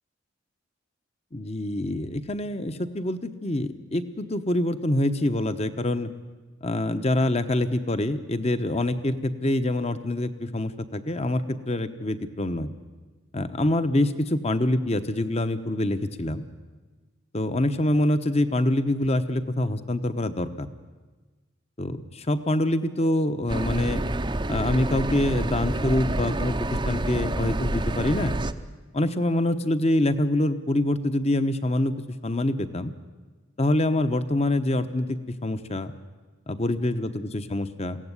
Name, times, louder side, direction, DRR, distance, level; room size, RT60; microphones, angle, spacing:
voice 1, 1.3-6.1 6.6-12.7 13.3-16.4 17.3-20.7 21.8-24.0 24.5-28.3 28.9-31.9 32.2-32.9 33.6-35.9 36.5-38.0, left 1 dB, 30° left, 11 dB, 1.1 m, -25 dB
sound 1, 23.5-28.5, right 1 dB, 25° right, 0.7 m, -28 dB
22.5 x 16.5 x 9.8 m, 1.3 s
head